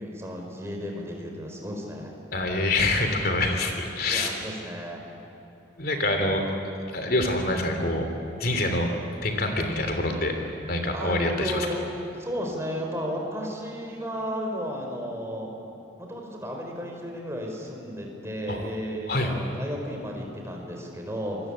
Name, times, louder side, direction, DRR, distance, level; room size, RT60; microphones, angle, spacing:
voice 1, 0.0-2.2 4.1-5.1 9.3-9.9 10.9-15.5 16.0-21.4, equal, 15° right, 1 dB, 4.5 m, -34 dB
voice 2, 2.3-4.3 5.8-6.4 6.9-8.1 8.4-8.9 9.2-10.4 10.7-11.7 18.5-18.6 19.1-19.3, left 2 dB, 50° left, 5 dB, 3.2 m, -25 dB
27.5 x 21.5 x 8.8 m, 3.0 s
head